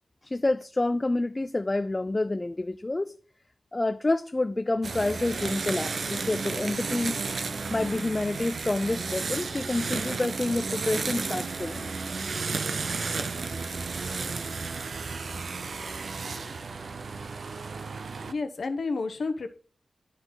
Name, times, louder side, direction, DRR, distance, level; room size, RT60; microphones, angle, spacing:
voice 1, 0.2-3.1 3.7-7.2 7.7-11.9, left 2 dB, 25° left, 0.4 m, -28 dB
sound 1, 4.8-18.3, right 4 dB, 60° right, 0.5 m, -33 dB
voice 2, 18.2-19.5, left 3 dB, 65° left, 1.0 m, -30 dB
11.5 x 4.0 x 3.9 m
wide cardioid pair, 75°, 0 cm